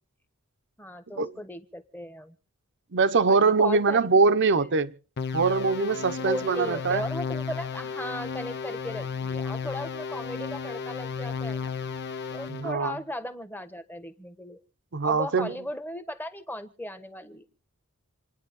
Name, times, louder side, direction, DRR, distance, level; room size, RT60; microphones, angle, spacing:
voice 1, 0.8-2.4 3.3-4.2 6.1-11.7 12.3-14.6 15.0-17.5, left 1 dB, 10° left, 1.2 m, -37 dB
voice 2, 2.9-4.9 5.3-7.0 12.5-13.0 14.9-15.5, right 4 dB, 55° right, 0.9 m, -23 dB
sound 1, 5.2-12.7, left 5 dB, 50° left, 0.8 m, -34 dB
28.5 x 10.0 x 3.7 m
head